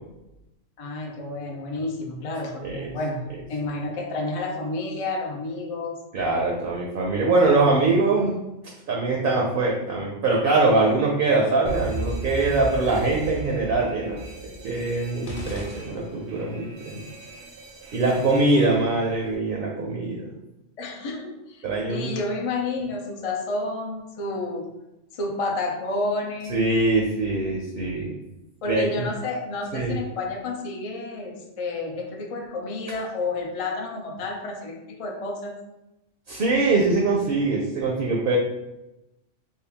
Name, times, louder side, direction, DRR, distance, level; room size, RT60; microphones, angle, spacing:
voice 1, 0.8-6.0 20.8-24.7 25.1-26.7 28.6-35.6, left 2 dB, 60° left, 0 dB, 0.3 m, -30 dB
voice 2, 6.1-8.3 8.9-17.0 17.9-20.3 21.6-22.2 26.5-28.2 28.7-28.9 29.7-30.0 36.3-38.4, right 3 dB, 55° right, -1 dB, 0.7 m, -23 dB
Alarm, 11.7-19.4, right 1 dB, 75° right, 1.0 m, -37 dB
sound 1, 15.2-16.6, left 1 dB, 85° left, 1.1 m, -38 dB
3.6 x 2.3 x 3.4 m, 0.94 s
omnidirectional pair, 1.3 m